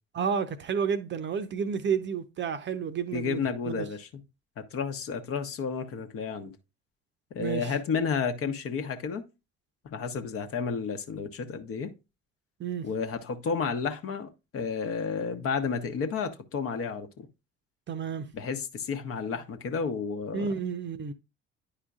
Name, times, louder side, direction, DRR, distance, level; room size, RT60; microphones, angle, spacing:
voice 1, 0.1-3.8 7.4-7.7 12.6-12.9 17.9-18.3 20.3-21.1, right 6 dB, 35° right, 0.8 m, -31 dB
voice 2, 3.1-4.1 4.7-6.5 7.3-9.2 9.9-11.9 12.8-17.3 18.3-20.5, left 5 dB, 45° left, 1.0 m, -31 dB
10.0 x 4.9 x 2.4 m
figure-of-eight pair, 50°, 32 cm